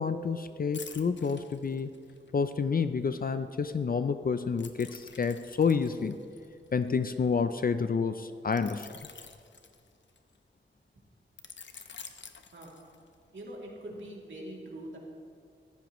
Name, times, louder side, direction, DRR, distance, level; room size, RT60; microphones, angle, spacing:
voice 1, 0.0-1.9 2.3-6.2 6.7-8.9, left 5 dB, 45° left, 10 dB, 0.5 m, -29 dB
sound 1, 0.7-2.3 4.6-7.3 8.5-10.4 11.4-13.2 13.7-13.9, left 5 dB, 65° left, 0.8 m, -49 dB
voice 2, 13.3-15.0, right 1 dB, 70° right, -3 dB, 2.7 m, -43 dB
15.0 x 14.5 x 3.1 m, 2.3 s
wide cardioid pair, 120°, 20 cm